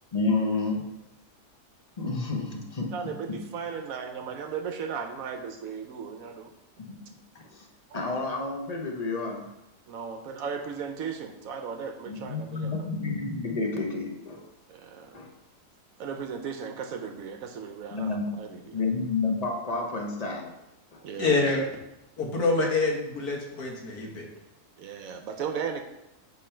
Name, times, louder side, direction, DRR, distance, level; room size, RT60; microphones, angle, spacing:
voice 1, 0.1-0.9 2.0-2.9 3.3-3.4 6.8-6.9 7.3-7.7 7.9-9.5 12.1-14.4 15.1-15.3 17.9-18.4 18.7-20.5 20.9-21.0, left 3 dB, 35° left, 1 dB, 0.7 m, -30 dB
voice 2, 2.9-6.5 7.9-8.0 9.9-12.9 14.7-15.3 16.0-18.8 21.0-21.5 24.8-25.8, right 6 dB, 70° right, 5 dB, 1.0 m, -36 dB
voice 3, 21.2-21.6 22.2-24.3, left 3 dB, 75° left, -1 dB, 1.7 m, -26 dB
7.2 x 3.7 x 4.4 m, 0.90 s
omnidirectional pair, 1.7 m